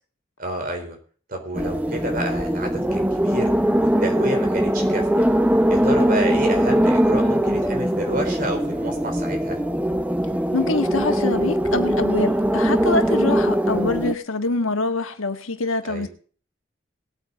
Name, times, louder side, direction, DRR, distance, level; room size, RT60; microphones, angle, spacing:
voice 1, 0.4-1.0 1.3-3.5 3.8-5.2 5.7-9.6 15.8-16.1, right 1 dB, 45° right, 4.1 m, -29 dB
sound 1, 1.5-14.1, equal, 5° right, 0.7 m, -21 dB
voice 2, 10.5-16.1, left 3 dB, 90° left, 1.6 m, -25 dB
19.5 x 8.7 x 4.1 m
head